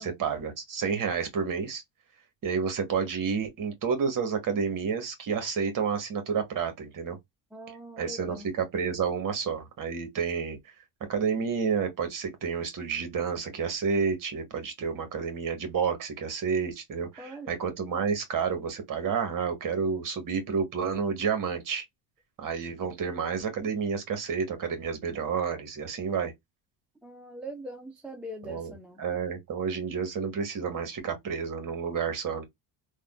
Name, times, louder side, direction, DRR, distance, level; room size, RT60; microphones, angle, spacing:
voice 1, 0.0-1.8 2.4-7.2 8.0-10.6 11.0-21.8 22.4-26.3 28.5-32.4, right 6 dB, 40° right, 1.3 m, -30 dB
voice 2, 7.5-8.5 17.2-17.6 27.0-29.0, equal, ahead, 0.4 m, -42 dB
3.4 x 2.3 x 2.3 m
supercardioid pair, 105°, 49 cm